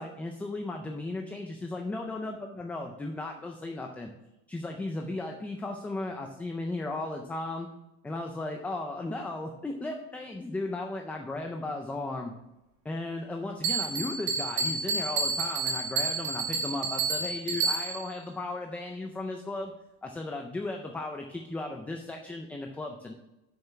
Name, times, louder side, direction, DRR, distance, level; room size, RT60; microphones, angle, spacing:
voice 1, 0.0-4.1 4.5-7.7 8.0-12.3 12.8-19.7 20.0-23.1, left 2 dB, 5° left, 3 dB, 0.3 m, -36 dB
Bell, 13.6-18.2, right 4 dB, 55° right, 2.0 m, -30 dB
6.6 x 6.5 x 5.9 m, 0.91 s
cardioid pair, 155°, 36 cm